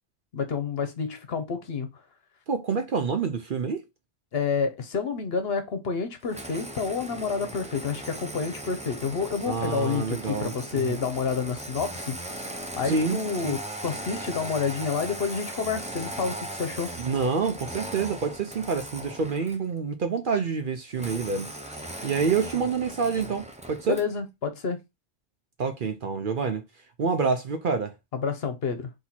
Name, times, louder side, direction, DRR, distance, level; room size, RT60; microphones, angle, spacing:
voice 1, 0.3-1.9 4.3-12.2 12.8-16.9 23.9-24.8 28.1-28.9, left 5 dB, 60° left, 1.0 m, -29 dB
voice 2, 2.5-3.8 9.4-11.0 12.8-13.6 17.0-24.0 25.6-26.6 27.0-27.9, right 5 dB, 55° right, 0.7 m, -28 dB
Engine starting, 6.3-19.7 20.9-24.2, right 1 dB, 10° right, 0.4 m, -38 dB
4.4 x 2.9 x 4.1 m
omnidirectional pair, 1.2 m